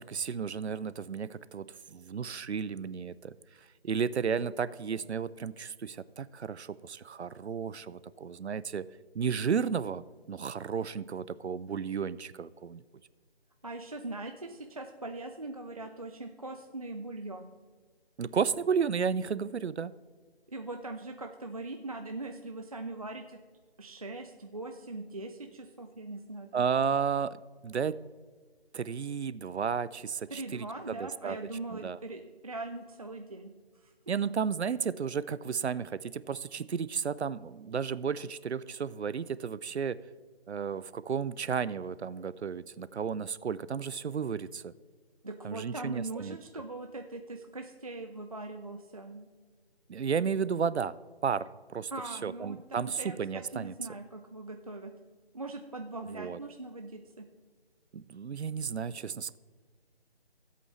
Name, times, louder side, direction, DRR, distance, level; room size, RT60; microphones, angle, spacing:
voice 1, 0.0-3.3 3.8-8.9 9.1-10.0 10.3-12.8 18.2-19.9 26.5-28.0 28.7-31.4 31.7-32.0 34.1-40.0 40.5-44.7 45.4-46.4 49.9-50.9 51.2-51.9 52.2-53.7 56.1-56.4 57.9-59.4, right 6 dB, 85° right, 18 dB, 0.5 m, -33 dB
voice 2, 13.6-17.5 20.5-23.4 23.8-26.5 30.3-33.9 45.2-49.3 51.9-54.9 55.3-57.3, right 2 dB, 35° right, 5 dB, 0.5 m, -41 dB
16.0 x 8.3 x 3.1 m, 1.5 s
figure-of-eight pair, 155°, 32 cm